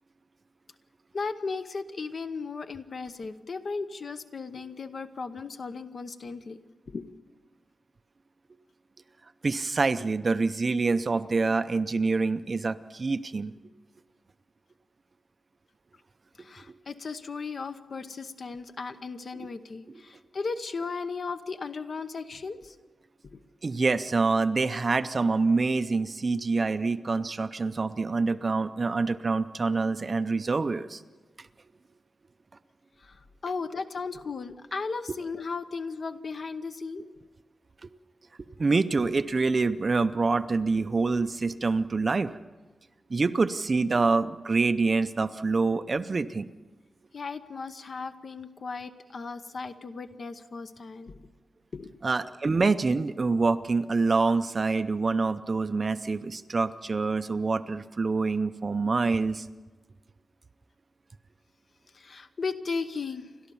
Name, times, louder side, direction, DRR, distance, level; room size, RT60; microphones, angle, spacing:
voice 1, 1.1-6.6 6.9-7.1 16.4-22.8 23.2-23.4 33.0-37.0 47.1-51.3 51.7-51.9 61.9-63.3, left 4 dB, 50° left, 9 dB, 0.9 m, -36 dB
voice 2, 9.4-13.5 19.3-19.5 19.9-20.0 23.6-31.0 31.4-31.5 38.6-42.3 43.1-46.5 52.0-59.5, right 3 dB, 35° right, 11 dB, 0.6 m, -26 dB
29.0 x 12.5 x 7.1 m, 1.2 s
wide cardioid pair, 165°, 0 cm